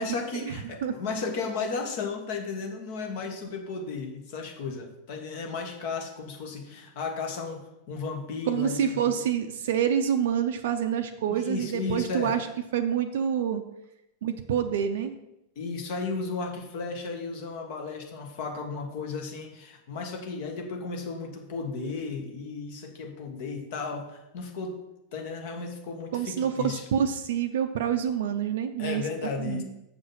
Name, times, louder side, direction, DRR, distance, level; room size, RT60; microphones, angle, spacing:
voice 1, 0.0-9.1 11.3-12.3 15.5-24.8 25.1-26.8 28.8-29.6, left 4 dB, 50° left, 3 dB, 1.6 m, -34 dB
voice 2, 8.5-12.5 12.7-13.6 14.2-15.1 26.1-29.0 29.4-29.6, right 8 dB, 55° right, 6 dB, 0.5 m, -27 dB
7.0 x 5.9 x 5.8 m, 0.89 s
figure-of-eight pair, 90°, 0 cm